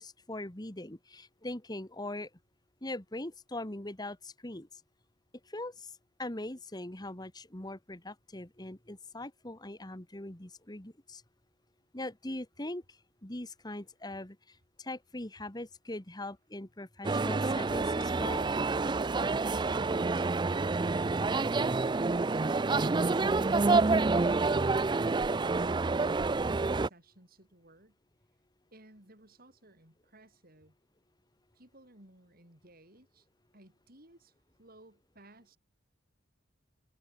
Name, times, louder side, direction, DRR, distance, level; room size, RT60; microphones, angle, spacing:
voice 1, 0.0-2.3 2.8-4.7 5.5-5.9 6.2-11.2 11.9-12.8 13.2-14.4 14.8-18.5, left 1 dB, 20° left, 1.9 m, -41 dB
sound 1, 17.0-26.9, right 3 dB, 25° right, 0.4 m, -28 dB
sound 2, 17.8-20.9 21.9-22.0 22.9-23.0, left 4 dB, 75° left, 6.1 m, -60 dB
voice 2, 24.2-28.0 28.7-30.7 31.5-33.3 33.5-34.3 34.6-35.6, right 1 dB, 50° right, 6.8 m, -57 dB
head